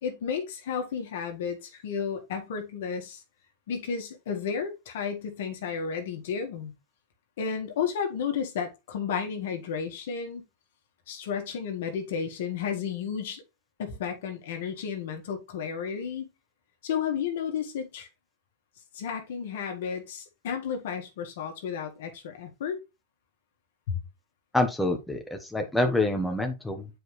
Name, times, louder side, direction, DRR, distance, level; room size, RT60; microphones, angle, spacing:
voice 1, 0.0-3.2 3.7-6.7 7.4-10.4 11.1-13.4 13.8-16.3 16.8-18.1 18.9-22.8 23.9-24.0, left 7 dB, 70° left, 1.7 m, -32 dB
voice 2, 24.5-26.9, left 2 dB, 5° left, 1.1 m, -26 dB
7.9 x 4.7 x 3.2 m
hypercardioid pair, 125°, 0 cm